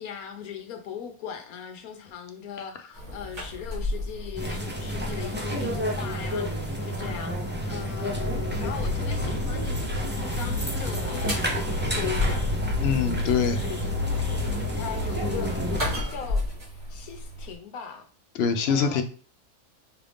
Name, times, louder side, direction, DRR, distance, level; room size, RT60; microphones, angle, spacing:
voice 1, 0.0-11.7 12.0-12.7 13.5-13.8 14.1-14.2 14.8-18.1 18.7-19.0, left 8 dB, 85° left, 5 dB, 1.2 m, -39 dB
sound 1, 2.9-17.6, left 1 dB, 85° right, 2.9 m, -36 dB
sound 2, 4.4-16.0, left 1 dB, 15° right, 0.4 m, -31 dB
sound 3, 8.1-16.0, left 2 dB, 35° right, 0.8 m, -31 dB
voice 2, 12.8-13.6 18.3-19.0, left 6 dB, 65° left, 8 dB, 0.6 m, -24 dB
5.5 x 2.5 x 3.4 m, 0.39 s
omnidirectional pair, 1.5 m